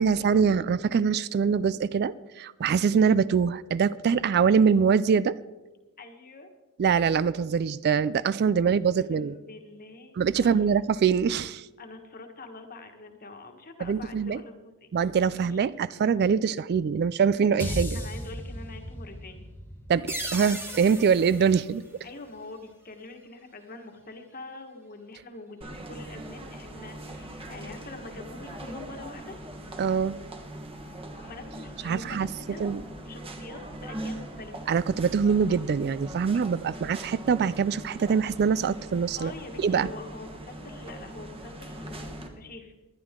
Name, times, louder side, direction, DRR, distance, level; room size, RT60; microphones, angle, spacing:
voice 1, 0.0-5.3 6.8-9.3 10.2-11.7 13.8-14.4 14.9-18.0 19.9-21.8 29.8-30.2 31.8-32.3 32.6-32.8 34.7-39.3 39.6-39.9, right 6 dB, 45° right, 0.3 m, -24 dB
voice 2, 6.0-6.5 9.1-10.8 11.8-14.9 15.4-15.6 17.9-19.5 22.0-29.4 31.2-34.7 39.2-42.7, left 2 dB, 40° left, 1.6 m, -45 dB
sound 1, 17.6-21.9, equal, 10° left, 1.1 m, -37 dB
sound 2, 20.1-22.6, right 1 dB, 10° right, 1.6 m, -38 dB
sound 3, 25.6-42.3, right 1 dB, 25° right, 1.4 m, -41 dB
20.0 x 11.5 x 3.7 m
head